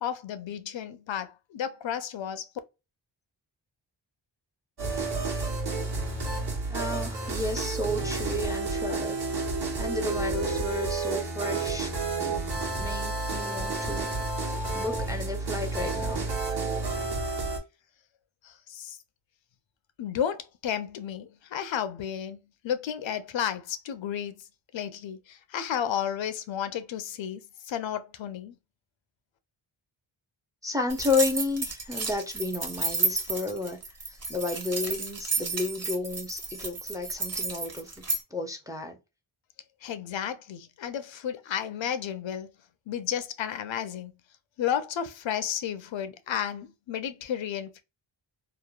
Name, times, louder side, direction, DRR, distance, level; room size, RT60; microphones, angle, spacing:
voice 1, 0.0-2.5 18.4-19.0 20.0-22.4 22.6-24.4 24.7-28.5 39.8-42.5 42.9-44.1 44.6-47.8, left 9 dB, 75° left, 0.5 m, -32 dB
sound 1, 4.8-17.6, right 3 dB, 55° right, 1.1 m, -30 dB
voice 2, 6.7-9.2 9.8-11.9 12.2-12.4 12.8-14.1 14.7-16.3 30.6-33.8 34.1-38.0 38.3-39.0, left 3 dB, 10° right, 0.4 m, -32 dB
sound 2, 30.9-38.2, right 3 dB, 30° right, 0.9 m, -31 dB
3.0 x 2.0 x 2.2 m
wide cardioid pair, 115°, 47 cm